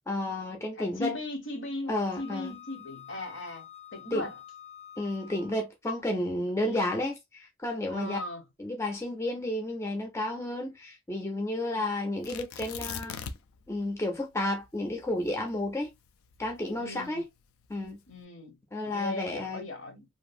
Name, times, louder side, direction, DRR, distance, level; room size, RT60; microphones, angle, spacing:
voice 1, 0.1-1.2 1.9-2.5 4.1-4.3 5.0-8.2 8.6-13.2 13.7-15.9 16.4-17.3 17.7-18.0 18.7-19.7, left 1 dB, 15° left, 0.4 m, -32 dB
voice 2, 0.8-4.3 6.6-6.9 7.9-8.4 16.8-17.2 18.1-18.6 18.8-20.0, left 2 dB, 60° left, 0.8 m, -38 dB
Wind instrument woodwind instrument, 2.1-5.6, left 10 dB, 50° right, 0.4 m, -48 dB
Tearing, 12.2-13.6 13.9-14.0 14.6-16.9 17.6-18.1, left 6 dB, 85° left, 0.4 m, -40 dB
2.6 x 2.4 x 2.5 m
head